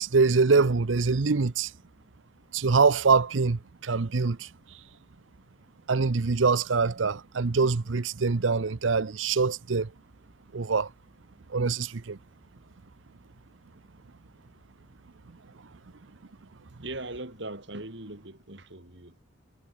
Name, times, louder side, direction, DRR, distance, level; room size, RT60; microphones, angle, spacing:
voice 1, 0.0-1.7 2.5-4.5 5.9-9.9 10.5-10.9 11.5-12.2, right 4 dB, 80° right, 0.7 m, -24 dB
voice 2, 16.8-19.2, right 2 dB, 65° right, 4.0 m, -40 dB
head